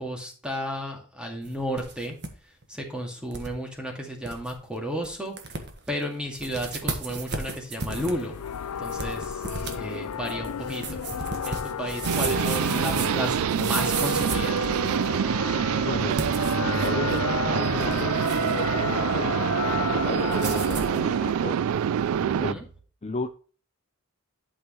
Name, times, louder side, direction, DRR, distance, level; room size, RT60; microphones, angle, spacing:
voice 1, 0.0-2.2 2.7-5.4 5.9-8.4 8.8-9.4 9.7-11.0 11.5-14.6 22.2-22.6, equal, 5° right, 2.1 m, -33 dB
sound 1, 1.4-2.3 2.6-2.7 3.3-3.5 3.9-4.0 4.2-4.5 5.0-5.1 5.4-5.9 6.3-15.2 16.0-17.3 17.6-18.6 20.3-21.0, right 4 dB, 50° right, 1.5 m, -35 dB
sound 2, 7.9-21.3, left 8 dB, 90° left, 0.5 m, -33 dB
sound 3, 12.1-22.5, right 8 dB, 70° right, 0.3 m, -26 dB
voice 2, 15.7-21.7 22.4-22.6 23.0-23.3, left 3 dB, 30° left, 0.5 m, -35 dB
11.5 x 6.2 x 3.1 m
head